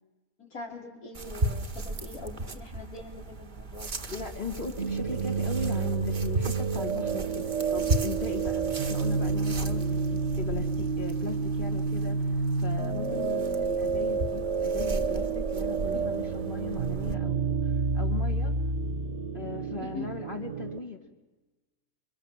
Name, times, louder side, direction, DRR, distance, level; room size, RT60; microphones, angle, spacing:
voice 1, 0.4-4.0 15.9-16.1 19.8-20.2, left 3 dB, 85° left, -1 dB, 5.1 m, -43 dB
sound 1, 1.1-17.1, right 2 dB, 35° right, 1.4 m, -36 dB
voice 2, 4.1-18.5 19.3-21.0, left 5 dB, 35° left, 1 dB, 2.5 m, -38 dB
sound 2, 4.8-20.8, right 4 dB, 55° right, 1.7 m, -29 dB
29.0 x 25.0 x 7.5 m, 1.2 s
omnidirectional pair, 1.5 m